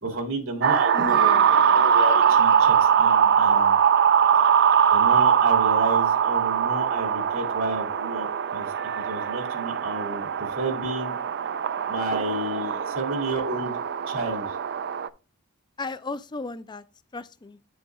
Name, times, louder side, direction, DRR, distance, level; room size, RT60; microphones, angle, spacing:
voice 1, 0.0-3.8 4.4-4.5 4.9-11.2 11.9-13.8 14.1-14.6, right 2 dB, 65° right, 2.0 m, -31 dB
sound 1, 0.6-15.1, right 7 dB, 50° right, 0.4 m, -22 dB
voice 2, 0.9-1.5 15.8-16.8 17.1-17.6, left 3 dB, 20° left, 0.4 m, -34 dB
9.3 x 6.9 x 2.3 m
head